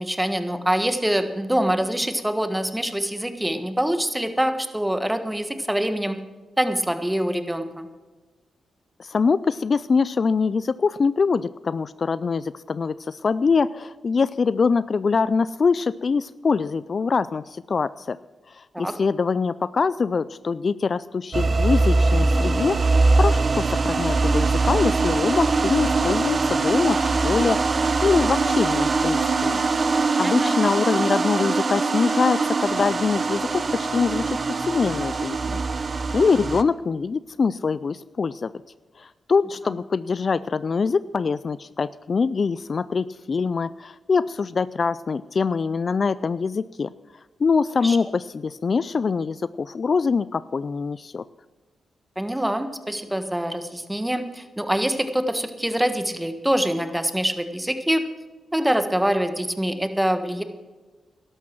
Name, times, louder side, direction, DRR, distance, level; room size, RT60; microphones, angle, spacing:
voice 1, 0.0-6.2 6.6-7.9 18.7-18.9 30.2-30.5 47.8-48.0 52.2-58.0 58.5-60.4, equal, 10° right, 9 dB, 1.5 m, -24 dB
voice 2, 9.0-18.2 18.5-29.6 30.2-35.6 36.1-38.5 39.0-46.9 47.4-51.2, left 5 dB, 50° left, 17 dB, 0.3 m, -24 dB
sound 1, 21.3-36.6, right 3 dB, 45° right, 0.8 m, -22 dB
12.0 x 11.5 x 6.1 m, 1.3 s
supercardioid pair, 50°, 0 cm